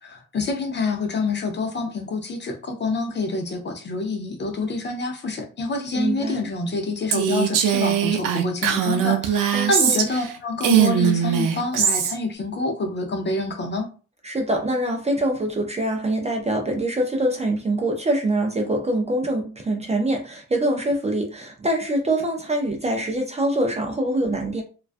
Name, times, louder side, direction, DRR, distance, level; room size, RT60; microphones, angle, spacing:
voice 1, 0.0-13.9, left 3 dB, 35° left, 0.5 m, -27 dB
voice 2, 5.9-6.4 9.5-10.1 14.2-24.6, right 1 dB, 20° right, 0.4 m, -24 dB
Female speech woman speaking, 7.1-10.3 10.6-12.1, right 9 dB, 85° right, 0.5 m, -20 dB
2.3 x 2.2 x 2.4 m
cardioid pair, 130°, 32 cm